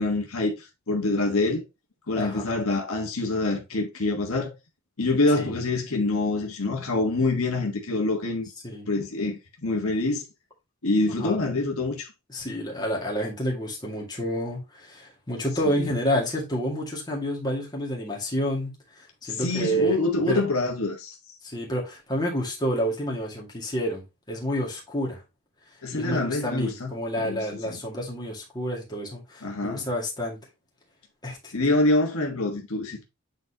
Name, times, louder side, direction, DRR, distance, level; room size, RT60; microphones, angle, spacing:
voice 1, 0.0-1.6 2.1-4.5 5.0-8.5 8.9-10.2 10.8-12.1 15.7-15.9 19.3-21.2 25.8-27.8 29.4-29.9 31.5-33.0, left 2 dB, 70° left, 1.4 m, -26 dB
voice 2, 2.2-2.5 5.4-5.5 8.6-8.9 11.2-11.3 12.3-20.0 20.3-20.4 21.4-24.0 24.3-25.2 25.9-30.4 31.2-31.5, equal, 20° left, 2.1 m, -29 dB
9.0 x 4.0 x 2.9 m
head